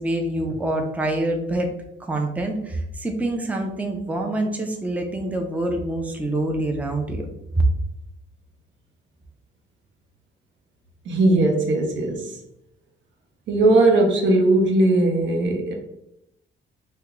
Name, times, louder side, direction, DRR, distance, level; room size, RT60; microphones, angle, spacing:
voice 1, 0.0-1.7 2.0-7.3 7.5-7.6, right 1 dB, 5° right, 3 dB, 0.5 m, -26 dB
voice 2, 11.1-12.3 13.5-15.7, right 2 dB, 70° right, 2 dB, 0.7 m, -19 dB
2.9 x 2.2 x 3.6 m, 0.82 s
cardioid pair, 90°, 20 cm